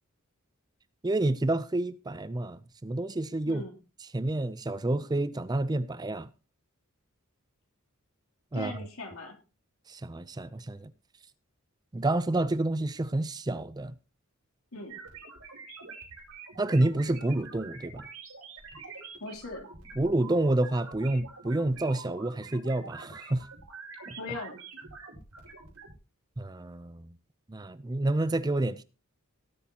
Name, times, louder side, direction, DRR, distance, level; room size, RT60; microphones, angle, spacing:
voice 1, 1.0-3.6 4.1-6.3 8.5-8.8 9.9-10.9 11.9-13.9 16.6-18.1 20.0-23.5 24.1-24.2 26.4-27.1 27.5-28.8, right 2 dB, 20° right, 0.5 m, -29 dB
voice 2, 8.5-9.4 14.7-15.0 19.2-19.7 24.2-24.6, left 2 dB, 75° left, 3.1 m, -39 dB
sound 1, 14.9-25.9, right 4 dB, 90° right, 5.1 m, -46 dB
18.5 x 8.4 x 2.9 m
head